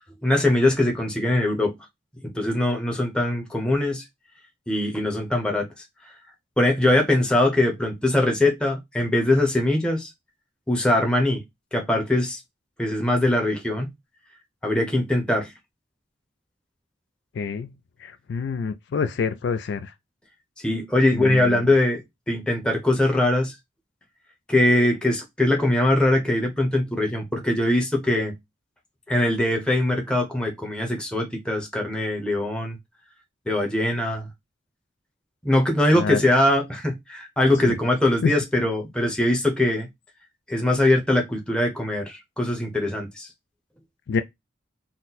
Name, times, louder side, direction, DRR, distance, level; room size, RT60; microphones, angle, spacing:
voice 1, 0.2-1.8 2.2-4.0 4.7-5.7 6.6-10.1 10.7-11.4 11.7-12.4 12.8-13.9 14.6-15.5 20.6-22.0 22.3-23.5 24.5-28.4 29.1-32.8 33.5-34.3 35.4-39.9 40.5-43.3, left 1 dB, 5° left, 0.8 m, -22 dB
voice 2, 17.4-17.7 18.0-19.9 21.1-21.6 35.9-36.2 37.6-37.7 38.2-38.3 44.1-44.2, left 5 dB, 60° left, 0.3 m, -27 dB
4.2 x 2.1 x 4.0 m
head